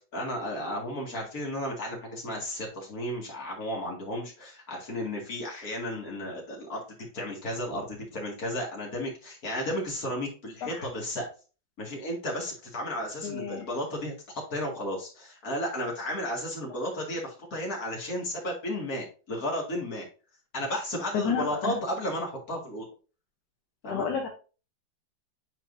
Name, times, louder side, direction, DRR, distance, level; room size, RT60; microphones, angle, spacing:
voice 1, 0.1-6.8 7.1-11.3 11.8-20.0 20.5-22.8 23.8-24.1, left 1 dB, 50° left, -1 dB, 2.5 m, -33 dB
voice 2, 13.2-13.7 21.1-21.8 23.9-24.3, left 6 dB, 70° left, 2 dB, 1.5 m, -30 dB
8.3 x 4.4 x 2.6 m, 0.35 s
omnidirectional pair, 2.0 m